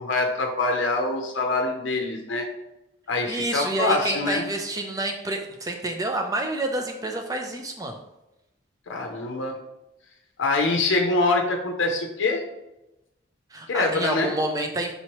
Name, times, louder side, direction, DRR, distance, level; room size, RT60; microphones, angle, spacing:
voice 1, 0.0-2.5 3.1-4.4 8.9-9.5 10.4-12.4 13.7-14.4, left 3 dB, 85° left, 2 dB, 0.6 m, -24 dB
voice 2, 3.3-8.0 13.5-15.0, right 2 dB, 20° right, 4 dB, 0.5 m, -28 dB
5.5 x 3.0 x 2.9 m, 0.92 s
head